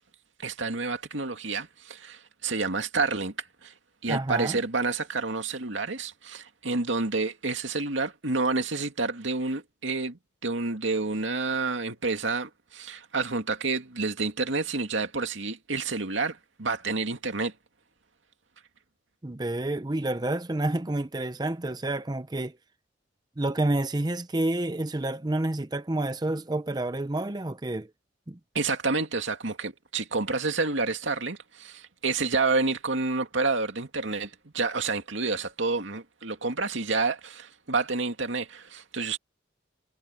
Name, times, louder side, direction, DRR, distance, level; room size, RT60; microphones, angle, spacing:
voice 1, 0.4-3.7 4.0-17.5 28.5-39.2, right 3 dB, 90° right, 2.4 m, -29 dB
voice 2, 4.1-4.6 19.2-22.6 23.4-27.9 28.3-28.4, right 2 dB, 20° right, 0.7 m, -29 dB
head